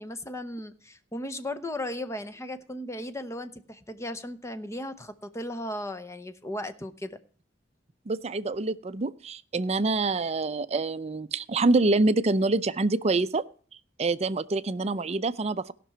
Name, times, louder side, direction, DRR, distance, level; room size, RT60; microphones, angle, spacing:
voice 1, 0.0-7.2, left 1 dB, 15° left, 11 dB, 0.8 m, -36 dB
voice 2, 8.1-13.4 14.0-15.7, right 3 dB, 35° right, 14 dB, 0.5 m, -26 dB
17.0 x 6.0 x 5.5 m, 0.43 s
head